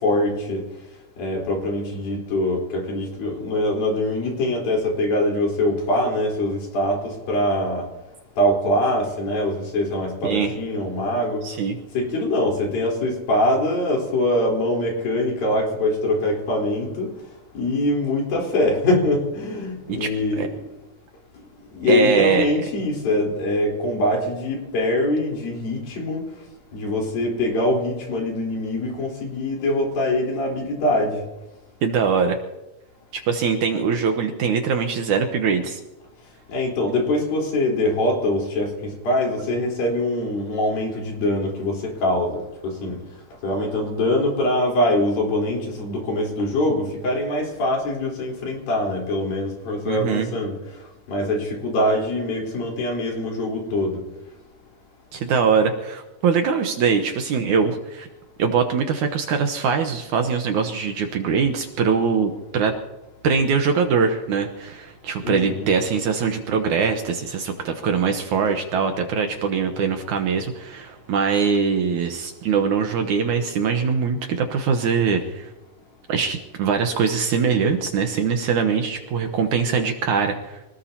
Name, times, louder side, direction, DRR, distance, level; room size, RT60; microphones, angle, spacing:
voice 1, 0.0-0.6 1.2-7.9 8.4-11.4 11.9-17.1 17.5-20.5 21.7-26.3 26.7-31.2 36.5-42.4 42.6-43.0 43.4-50.6 51.1-54.0 65.2-65.7, left 1 dB, 80° left, -1 dB, 5.8 m, -23 dB
voice 2, 11.4-11.8 19.9-20.1 20.4-20.5 21.9-22.5 31.8-32.4 33.3-35.8 49.9-50.3 55.1-58.1 58.4-62.7 63.2-75.5 76.1-80.6, right 6 dB, 70° right, 5 dB, 2.2 m, -22 dB
25.0 x 18.5 x 2.9 m, 1.0 s
omnidirectional pair, 4.1 m